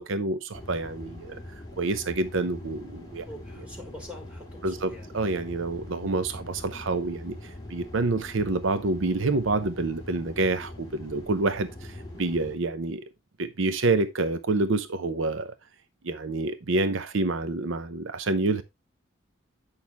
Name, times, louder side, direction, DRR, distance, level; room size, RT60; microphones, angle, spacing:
voice 1, 0.0-1.4 1.8-3.3 4.6-13.0 13.4-15.5 16.0-18.6, right 3 dB, 75° right, 0.7 m, -28 dB
sound 1, 0.5-12.6, left 1 dB, 20° left, 2.4 m, -43 dB
voice 2, 3.3-5.1, left 1 dB, 5° right, 3.1 m, -44 dB
9.0 x 6.3 x 3.4 m
head